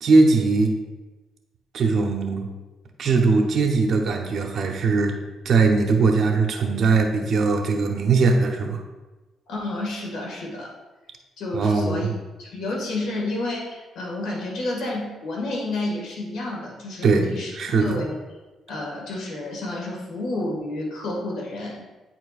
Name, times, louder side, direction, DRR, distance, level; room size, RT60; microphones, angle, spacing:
voice 1, 0.0-0.7 1.7-2.5 3.0-5.2 5.4-8.8 11.5-12.1 17.0-17.3 17.5-18.0, right 4 dB, 60° right, 3 dB, 1.0 m, -20 dB
voice 2, 9.5-10.7 11.4-12.1 12.4-17.5 17.8-18.2 18.7-21.8, left 2 dB, 75° left, -2 dB, 1.9 m, -30 dB
9.0 x 4.4 x 2.5 m, 1.2 s
cardioid pair, 90°, 0 cm